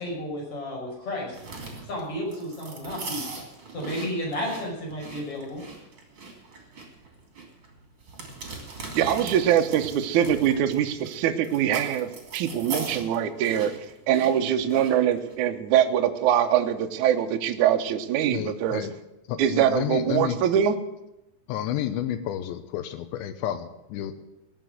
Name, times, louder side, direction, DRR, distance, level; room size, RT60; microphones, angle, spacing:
voice 1, 0.0-1.4 1.9-3.2 3.7-5.6, left 1 dB, 30° left, -3 dB, 6.6 m, -32 dB
sound 1, 1.3-15.3, right 3 dB, 30° right, 3.2 m, -40 dB
voice 2, 8.9-13.7 14.1-18.8 19.4-20.7, right 10 dB, 85° right, 6 dB, 1.7 m, -23 dB
voice 3, 18.3-18.9 19.3-20.4 21.5-24.2, left 11 dB, 90° left, 9 dB, 3.2 m, -31 dB
19.0 x 7.6 x 7.6 m, 0.92 s
omnidirectional pair, 5.1 m